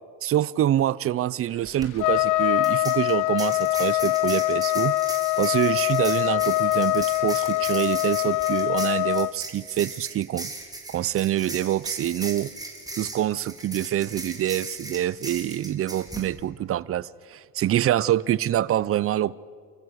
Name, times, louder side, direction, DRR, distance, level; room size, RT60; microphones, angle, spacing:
voice 1, 0.2-4.9 5.4-10.5 10.9-12.5 13.0-19.3, right 12 dB, 40° right, 0.6 m, -25 dB
sound 1, 1.6-1.9 2.6-16.3, right 2 dB, 10° right, 3.3 m, -38 dB
Trumpet, 2.0-9.3, left 19 dB, 65° left, 0.7 m, -23 dB
29.5 x 14.5 x 6.5 m
cardioid pair, 100°, 34 cm